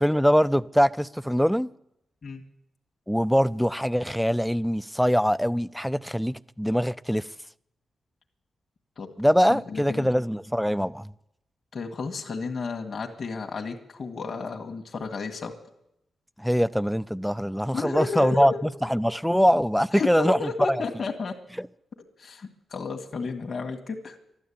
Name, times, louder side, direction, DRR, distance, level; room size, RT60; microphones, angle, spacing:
voice 1, 0.0-1.7 3.1-7.3 9.2-11.1 16.4-20.8 21.6-21.7, equal, ahead, 0.5 m, -23 dB
voice 2, 9.5-10.1 11.7-15.5 17.7-18.6 19.9-21.3 22.2-24.2, left 4 dB, 55° left, 1.8 m, -32 dB
12.5 x 11.5 x 8.7 m
cardioid pair, 65°, 0 cm